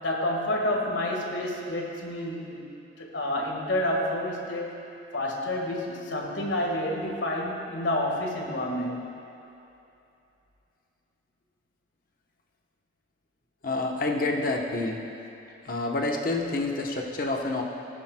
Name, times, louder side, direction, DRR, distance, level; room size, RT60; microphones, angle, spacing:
voice 1, 0.0-2.7 3.0-4.8 5.1-9.1, left 1 dB, 85° left, -1 dB, 1.7 m, -29 dB
voice 2, 13.6-15.0 15.7-17.6, left 2 dB, 50° left, 1 dB, 1.0 m, -28 dB
18.0 x 10.0 x 2.2 m, 2.8 s
head